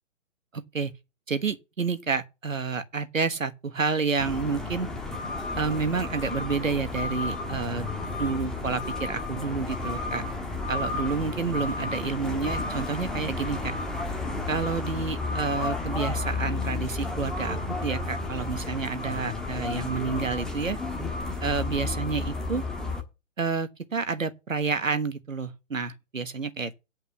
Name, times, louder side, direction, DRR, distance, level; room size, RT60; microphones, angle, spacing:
voice 1, 0.5-0.9 1.3-4.9 5.6-7.9 8.2-10.2 10.7-13.8 14.5-20.8 21.4-22.6 23.4-26.7, right 4 dB, 85° right, 1.5 m, -29 dB
sound 1, 4.2-23.0, left 3 dB, ahead, 1.4 m, -32 dB
9.6 x 5.5 x 7.1 m
figure-of-eight pair, 135°, 39 cm